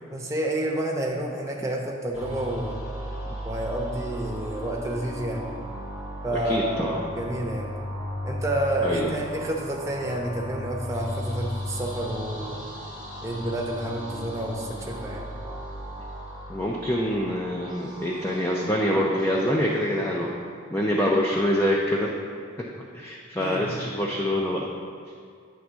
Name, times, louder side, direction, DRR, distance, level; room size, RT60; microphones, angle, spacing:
voice 1, 0.1-2.8 3.4-5.5 6.2-7.7 8.2-12.7 13.2-15.3 23.4-23.7, right 1 dB, 15° right, -1 dB, 0.8 m, -29 dB
sound 1, 2.1-20.4, equal, 65° left, 2.1 m, -36 dB
voice 2, 6.3-7.0 8.8-9.2 16.5-20.3 20.7-22.1 22.9-24.7, equal, 10° left, -2 dB, 0.5 m, -25 dB
9.4 x 3.5 x 6.1 m, 2.2 s
head